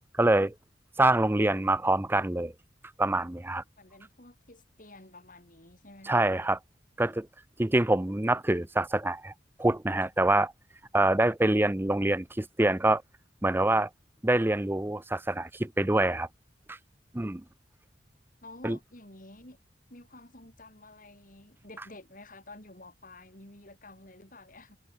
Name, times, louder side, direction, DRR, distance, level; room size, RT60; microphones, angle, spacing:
voice 1, 0.1-0.5 1.0-2.5 3.0-3.6 6.0-6.6 7.0-7.3 7.6-9.3 9.6-10.5 10.9-13.0 13.4-13.9 14.2-16.3 16.7-16.8 17.1-17.4 18.6-18.8, right 2 dB, 10° right, 0.6 m, -25 dB
voice 2, 3.8-6.2 18.4-19.6 19.9-24.8, left 2 dB, 45° left, 7.9 m, -50 dB
head